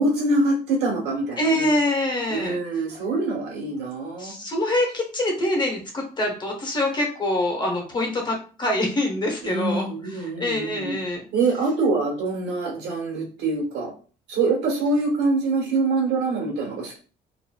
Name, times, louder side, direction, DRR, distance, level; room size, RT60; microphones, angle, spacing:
voice 1, 0.0-1.7 2.3-4.3 9.4-11.0 11.3-13.9 14.3-17.0, right 3 dB, 90° right, -1 dB, 1.2 m, -24 dB
voice 2, 1.4-2.6 4.2-9.9 10.4-11.2, left 1 dB, 25° left, 1 dB, 0.9 m, -25 dB
2.8 x 2.5 x 2.2 m, 0.38 s
cardioid pair, 110°, 17 cm